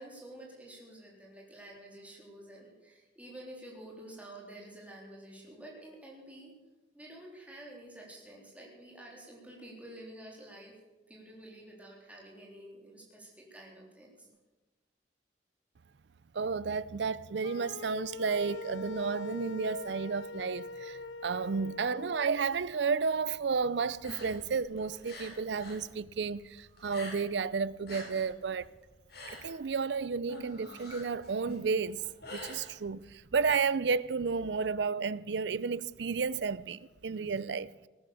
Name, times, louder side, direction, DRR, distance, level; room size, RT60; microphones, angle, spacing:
voice 1, 0.0-6.5 6.9-10.7 11.1-14.3 21.8-21.9, right 1 dB, 10° right, 3.7 m, -50 dB
voice 2, 16.3-28.7 29.3-32.0 32.3-37.9, right 5 dB, 70° right, 0.5 m, -32 dB
sound 1, 17.4-22.3, left 4 dB, 85° left, 0.6 m, -43 dB
sound 2, 23.9-25.8 26.1-27.5 27.7-33.2, left 1 dB, 60° left, 6.7 m, -46 dB
18.5 x 10.5 x 7.0 m
head